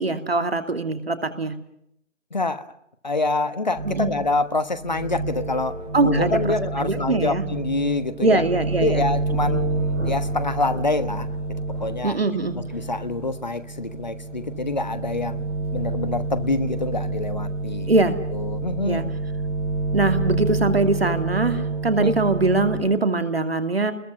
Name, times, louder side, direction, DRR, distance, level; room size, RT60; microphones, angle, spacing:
voice 1, 0.0-1.6 3.8-4.1 5.9-6.4 6.8-7.4 8.2-9.0 9.4-9.6 12.0-12.6 17.9-18.2 18.8-19.0 19.9-23.9, right 3 dB, 50° right, 8 dB, 2.6 m, -22 dB
voice 2, 2.3-2.7 3.0-8.4 8.8-11.3 11.8-12.2 12.5-15.4 15.7-17.9 18.3-19.1 22.0-22.1, left 3 dB, 35° left, 13 dB, 1.2 m, -26 dB
sound 1, 3.8-4.4 4.7-22.8, right 3 dB, 30° right, 6.7 m, -28 dB
Thunder, 8.6-20.2, right 1 dB, 70° right, 7.1 m, -45 dB
29.5 x 21.5 x 5.5 m, 0.73 s
figure-of-eight pair, 165°, 37 cm